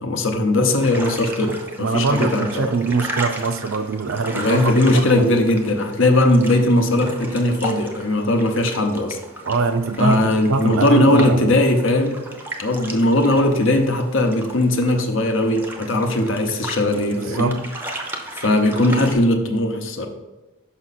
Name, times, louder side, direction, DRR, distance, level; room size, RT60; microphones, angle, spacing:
voice 1, 0.0-2.7 4.3-9.2 10.0-12.2 12.6-17.6 18.4-20.1, left 1 dB, 60° left, 4 dB, 0.8 m, -19 dB
sound 1, 0.8-19.1, right 1 dB, 10° right, 0.6 m, -35 dB
voice 2, 1.8-5.3 9.4-11.5 17.2-17.6, right 4 dB, 65° right, 9 dB, 0.5 m, -23 dB
6.0 x 5.4 x 4.1 m, 1.1 s
head